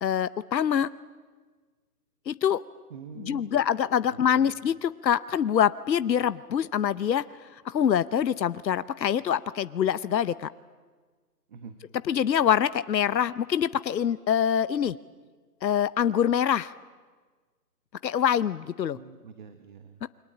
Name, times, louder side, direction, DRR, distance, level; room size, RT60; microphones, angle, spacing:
voice 1, 0.0-0.9 2.3-2.6 3.3-7.2 7.7-10.5 12.1-15.0 15.6-16.7 18.0-19.0 20.0-20.1, left 9 dB, 80° left, 17 dB, 0.8 m, -25 dB
voice 2, 2.9-3.5 4.1-4.6 11.5-11.8 18.9-20.0, right 5 dB, 30° right, 10 dB, 1.0 m, -45 dB
28.5 x 22.0 x 8.7 m, 1.4 s
hypercardioid pair, 155°, 50 cm